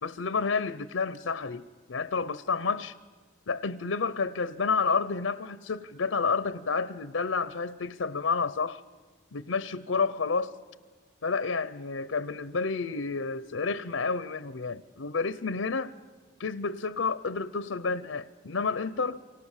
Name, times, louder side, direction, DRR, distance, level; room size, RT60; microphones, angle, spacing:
voice 1, 0.0-2.9 3.5-8.8 9.3-10.5 11.2-15.9 16.4-19.2, left 4 dB, 80° left, 0.7 m, -30 dB
29.5 x 24.5 x 7.3 m
head